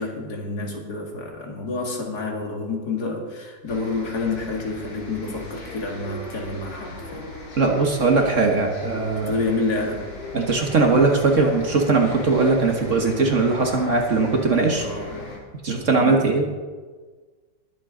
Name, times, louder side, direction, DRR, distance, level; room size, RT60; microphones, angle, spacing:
voice 1, 0.0-7.3 9.3-10.1 14.7-15.3 16.0-16.3, left 3 dB, 60° left, 1 dB, 2.4 m, -29 dB
sound 1, 3.7-15.4, left 2 dB, 80° left, 3.3 m, -37 dB
voice 2, 7.6-9.3 10.3-14.9 15.6-16.6, right 3 dB, 45° right, 2 dB, 1.5 m, -20 dB
20.0 x 8.4 x 3.8 m, 1.4 s
omnidirectional pair, 1.9 m